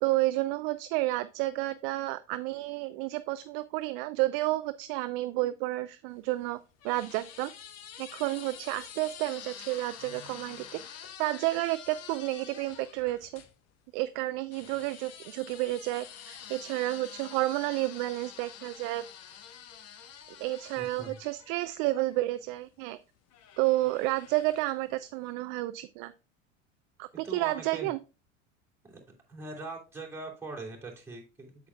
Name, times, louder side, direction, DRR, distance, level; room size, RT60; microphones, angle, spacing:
voice 1, 0.0-6.6 6.8-7.5 8.0-10.8 11.2-13.4 13.9-19.0 20.4-23.0 23.6-26.1 27.0-28.0, right 18 dB, 45° right, 13 dB, 0.4 m, -31 dB
sound 1, 6.1-13.5 14.5-22.4 23.3-24.9, left 9 dB, 40° left, 1.0 m, -48 dB
voice 2, 20.8-21.2 27.2-27.9 28.8-29.0 29.3-31.7, right 3 dB, 5° right, -3 dB, 2.9 m, -42 dB
8.3 x 7.3 x 2.2 m, 0.30 s
figure-of-eight pair, 75°, 39 cm